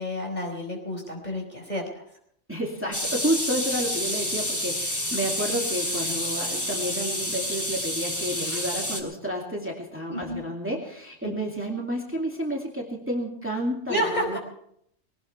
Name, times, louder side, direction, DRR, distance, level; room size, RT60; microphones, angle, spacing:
voice 1, 0.0-2.0 10.1-10.4 11.2-11.4 13.9-14.4, equal, 35° left, 0 dB, 4.7 m, -30 dB
voice 2, 2.5-14.4, equal, 10° right, -1 dB, 2.4 m, -30 dB
sound 1, 2.9-9.0, left 1 dB, 15° left, 2.7 m, -29 dB
20.5 x 18.5 x 3.3 m, 0.69 s
omnidirectional pair, 1.2 m